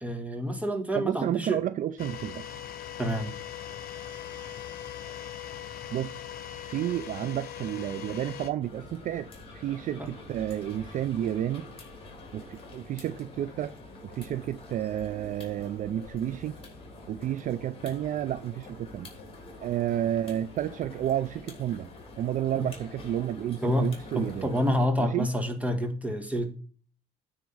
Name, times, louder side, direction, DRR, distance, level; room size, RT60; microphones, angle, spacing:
voice 1, 0.0-1.6 3.0-3.3 10.0-10.1 22.5-22.7 23.6-23.9 24.1-26.6, equal, 10° right, 1.7 m, -28 dB
voice 2, 1.0-2.5 5.9-6.2 6.7-11.7 12.3-13.7 14.0-16.5 17.1-19.1 19.6-21.9 22.2-24.5 25.0-25.3, right 11 dB, 50° right, 0.4 m, -31 dB
sound 1, 2.0-8.5, left 10 dB, 60° left, 1.1 m, -40 dB
sound 2, 8.6-24.9, left 2 dB, 35° left, 3.1 m, -46 dB
9.3 x 3.7 x 6.9 m
cardioid pair, 110°, 17 cm